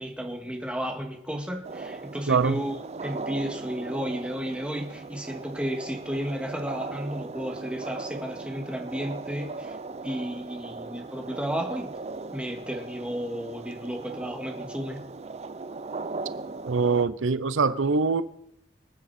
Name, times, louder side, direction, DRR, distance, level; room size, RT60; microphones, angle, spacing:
voice 1, 0.0-9.8 10.0-11.9 12.3-15.0, equal, 5° right, 3 dB, 1.8 m, -33 dB
sound 1, 1.6-17.1, right 3 dB, 35° right, 0.5 m, -38 dB
voice 2, 2.3-2.6 16.6-18.2, right 4 dB, 85° right, 15 dB, 0.6 m, -23 dB
25.5 x 9.2 x 4.2 m, 0.77 s
head